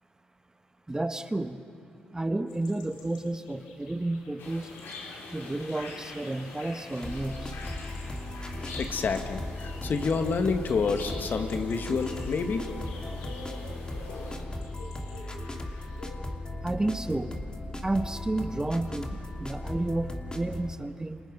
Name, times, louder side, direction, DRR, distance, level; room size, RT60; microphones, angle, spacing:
voice 1, 0.9-1.6 2.1-4.7 5.3-7.6 16.6-17.4 17.8-21.2, right 2 dB, 15° right, 9 dB, 1.3 m, -31 dB
sound 1, 2.5-16.2, left 3 dB, 90° left, 3.4 m, -49 dB
sound 2, 4.4-14.4, left 3 dB, 70° left, 4.7 m, -45 dB
sound 3, 7.0-20.7, left 1 dB, 20° left, 2.8 m, -37 dB
voice 2, 8.8-12.7, left 5 dB, 55° left, 7 dB, 1.8 m, -28 dB
29.5 x 27.0 x 5.4 m, 2.5 s
hypercardioid pair, 50°, 4 cm